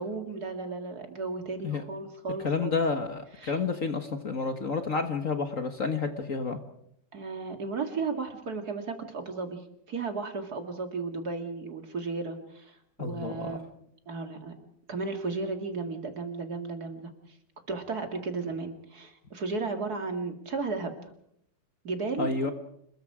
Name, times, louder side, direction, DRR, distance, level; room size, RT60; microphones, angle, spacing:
voice 1, 0.0-2.7 3.4-3.6 7.1-9.6 9.9-13.7 14.1-14.5 14.9-17.1 17.7-20.9 21.8-22.3, right 4 dB, 50° right, 5 dB, 2.7 m, -34 dB
voice 2, 2.4-6.6 13.0-13.6 22.2-22.5, left 4 dB, 45° left, 7 dB, 1.6 m, -30 dB
28.0 x 21.0 x 4.9 m, 0.75 s
omnidirectional pair, 2.2 m